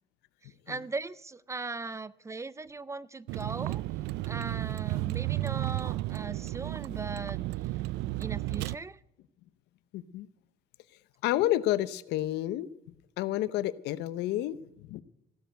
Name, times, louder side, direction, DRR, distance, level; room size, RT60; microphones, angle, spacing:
voice 1, 0.4-3.8 4.2-7.4 8.2-9.0, right 3 dB, 15° right, 19 dB, 0.5 m, -39 dB
Vehicle, 3.3-8.7, right 17 dB, 85° right, 0.4 m, -33 dB
voice 2, 9.9-10.3 11.2-12.7 13.2-15.0, left 14 dB, 85° left, 16 dB, 0.8 m, -30 dB
15.5 x 6.8 x 9.1 m, 0.86 s
cardioid pair, 110°, 17 cm